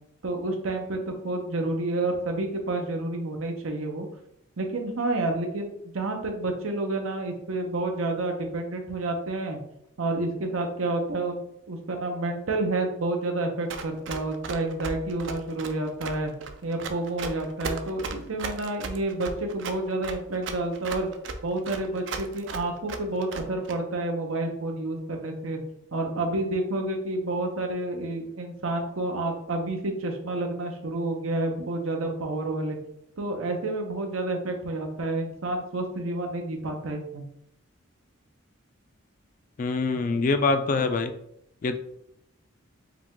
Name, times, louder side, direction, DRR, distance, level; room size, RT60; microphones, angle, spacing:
voice 1, 0.2-4.1 4.6-9.6 10.0-11.4 11.7-16.3 16.6-21.1 21.4-25.6 25.9-32.8 33.2-37.2, right 2 dB, 90° right, 3 dB, 0.8 m, -29 dB
Run, 13.7-23.7, right 4 dB, 60° right, 0.4 m, -36 dB
voice 2, 39.6-41.1 41.6-41.8, left 3 dB, 40° left, 8 dB, 0.3 m, -24 dB
4.8 x 2.3 x 3.7 m, 0.76 s
head